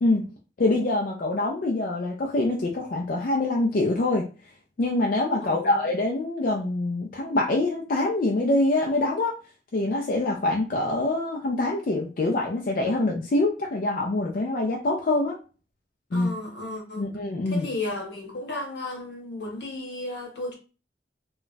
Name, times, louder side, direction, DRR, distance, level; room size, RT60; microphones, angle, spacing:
voice 1, 0.6-4.2 4.8-9.4 9.7-15.4 16.1-16.3 17.0-17.7, left 2 dB, 50° left, 0.4 m, -25 dB
voice 2, 5.4-5.9 16.1-17.0 17.5-20.5, left 2 dB, 75° left, 1.0 m, -34 dB
2.3 x 2.2 x 3.9 m
head